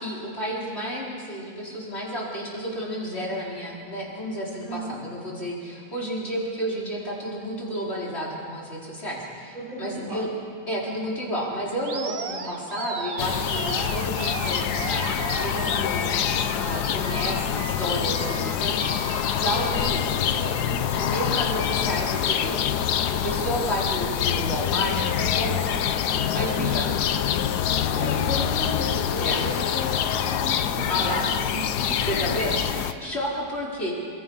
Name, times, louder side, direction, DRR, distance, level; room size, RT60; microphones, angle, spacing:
voice 1, 0.0-10.3 10.7-16.2 16.5-25.9 26.3-27.1 27.7-28.1 29.2-29.5 30.9-31.3 32.0-33.9, equal, 30° left, -5 dB, 4.6 m, -31 dB
voice 2, 4.6-5.0 9.5-10.3 26.5-26.9 27.7-32.4, right 1 dB, 80° right, -4 dB, 7.2 m, -36 dB
Animal, 11.8-20.0, right 4 dB, 45° right, 1.4 m, -35 dB
sound 1, 13.2-32.9, left 9 dB, 65° left, 1.2 m, -25 dB
sound 2, 24.6-30.6, left 9 dB, 90° left, 1.7 m, -36 dB
28.5 x 21.5 x 5.6 m, 2.2 s
omnidirectional pair, 2.2 m